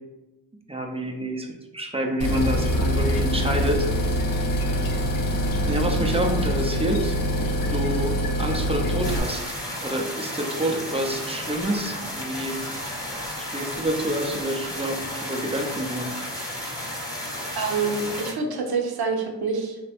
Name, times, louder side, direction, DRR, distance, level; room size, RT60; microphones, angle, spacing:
voice 1, 0.7-1.5 1.7-3.9 4.2-4.3 5.7-7.2 7.7-9.5 9.8-12.6 13.5-16.1, right 1 dB, 15° right, 1 dB, 0.4 m, -28 dB
sound 1, 2.2-9.2, equal, 45° left, 0.6 m, -24 dB
sound 2, 9.0-18.3, left 1 dB, 10° left, 0.8 m, -33 dB
voice 2, 17.6-19.8, right 4 dB, 50° right, 2 dB, 0.7 m, -27 dB
3.2 x 2.1 x 2.8 m, 1.1 s
cardioid pair, 60°, 48 cm